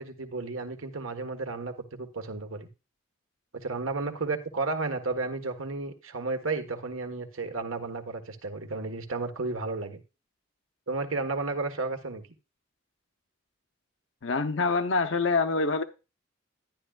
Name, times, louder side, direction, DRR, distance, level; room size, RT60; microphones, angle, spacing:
voice 1, 0.0-2.7 3.5-10.0 10.9-12.3, right 3 dB, 90° right, 1.5 m, -33 dB
voice 2, 14.2-15.8, left 4 dB, 65° left, 0.8 m, -25 dB
11.5 x 10.5 x 2.4 m
head